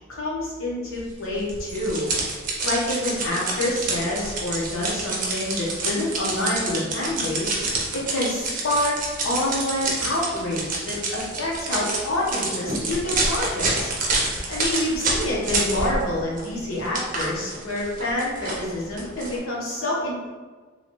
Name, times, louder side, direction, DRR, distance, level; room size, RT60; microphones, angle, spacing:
voice 1, 0.2-2.1 2.6-7.6 7.9-9.0 9.2-13.9 14.5-20.3, left 1 dB, 90° left, -5 dB, 0.9 m, -27 dB
sound 1, 1.5-16.1 16.4-19.4, right 2 dB, 40° right, 0.5 m, -28 dB
2.8 x 2.4 x 3.0 m, 1.4 s
head